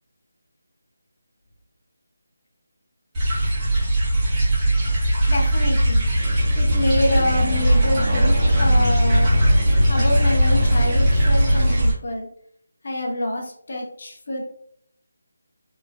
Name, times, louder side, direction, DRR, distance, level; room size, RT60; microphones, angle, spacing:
sound 1, 3.1-11.9, right 1 dB, 20° right, 1.2 m, -20 dB
voice 1, 5.3-6.1 6.6-9.3 9.9-12.3 12.8-14.4, left 1 dB, 55° left, -1 dB, 0.7 m, -26 dB
sound 2, 6.2-11.8, equal, 55° right, 0.9 m, -22 dB
3.1 x 2.3 x 2.2 m, 0.64 s
figure-of-eight pair, 160°, 0 cm